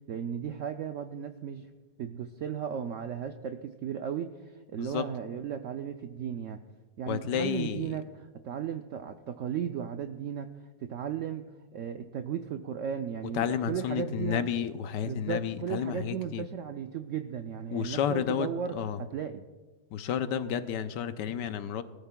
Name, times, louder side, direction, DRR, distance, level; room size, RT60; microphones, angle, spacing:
voice 1, 0.1-1.7 2.0-6.6 7.0-10.5 10.8-11.4 11.7-14.4 15.0-19.5, right 8 dB, 75° right, 7 dB, 0.7 m, -35 dB
voice 2, 7.1-7.9 13.3-16.4 17.7-19.0 19.9-21.8, left 8 dB, 85° left, 11 dB, 1.3 m, -31 dB
20.0 x 13.0 x 2.2 m, 1.3 s
omnidirectional pair, 1.8 m